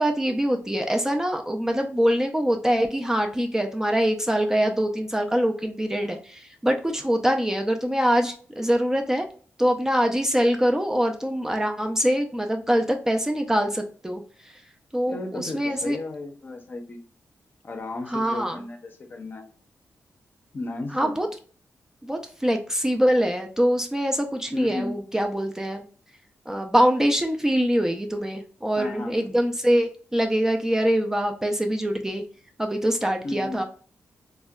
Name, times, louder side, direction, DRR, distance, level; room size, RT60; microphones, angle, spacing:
voice 1, 0.0-9.3 9.6-14.2 14.9-16.0 18.1-18.6 20.9-21.3 22.0-25.8 26.5-32.2 32.6-33.6, equal, 10° right, 3 dB, 0.3 m, -24 dB
voice 2, 15.1-17.0 17.6-19.5 20.5-21.2 24.5-25.0 28.8-29.3 33.2-33.6, left 2 dB, 45° left, 4 dB, 0.5 m, -34 dB
3.5 x 2.1 x 2.2 m, 0.43 s
cardioid pair, 95°, 5 cm